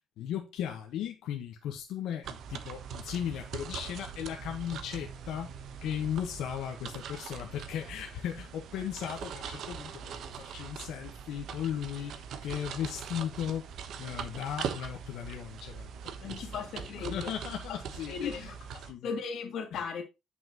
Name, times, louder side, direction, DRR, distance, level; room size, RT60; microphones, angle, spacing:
voice 1, 0.2-13.7 14.0-16.6 17.0-18.5 18.9-19.1 19.7-19.8, left 9 dB, 85° left, 1.4 m, -37 dB
sound 1, 2.2-18.9, right 7 dB, 60° right, 1.1 m, -42 dB
voice 2, 16.2-17.3 18.1-18.4 18.8-20.0, left 5 dB, 60° left, 2.4 m, -37 dB
9.9 x 5.9 x 3.0 m
cardioid pair, 160°, 0 cm